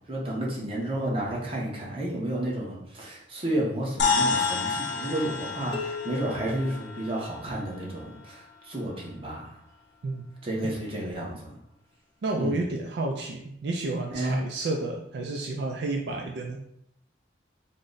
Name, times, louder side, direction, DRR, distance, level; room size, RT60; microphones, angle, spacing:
voice 1, 0.1-9.6 10.4-11.5 12.4-12.6 14.1-14.4, right 1 dB, 30° right, -3 dB, 0.9 m, -31 dB
sound 1, 4.0-8.6, left 4 dB, 80° left, 0.6 m, -30 dB
sound 2, 5.7-7.7, left 5 dB, 25° left, 0.6 m, -39 dB
voice 2, 12.2-16.6, right 2 dB, 65° right, 2 dB, 0.4 m, -31 dB
3.8 x 2.1 x 3.8 m, 0.75 s
head